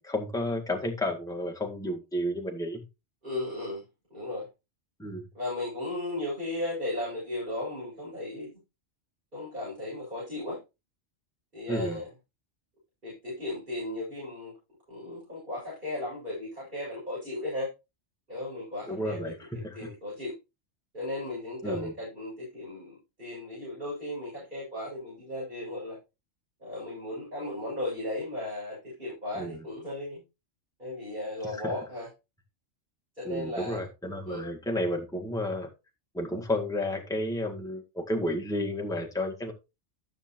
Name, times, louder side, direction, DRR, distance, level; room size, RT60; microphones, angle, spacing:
voice 1, 0.0-2.8 5.0-5.2 11.7-12.0 18.9-19.9 21.6-21.9 29.4-29.7 31.4-31.7 33.3-35.7 36.1-39.5, left 1 dB, 5° left, 1.8 m, -32 dB
voice 2, 3.2-3.8 4.1-4.5 5.3-8.5 9.3-10.6 11.5-12.1 13.0-14.5 14.9-17.7 18.3-20.3 20.9-26.0 26.6-30.2 30.8-32.1 33.2-33.8 34.3-34.4, left 1 dB, 45° right, 7.6 m, -36 dB
13.0 x 7.4 x 3.1 m
omnidirectional pair, 1.2 m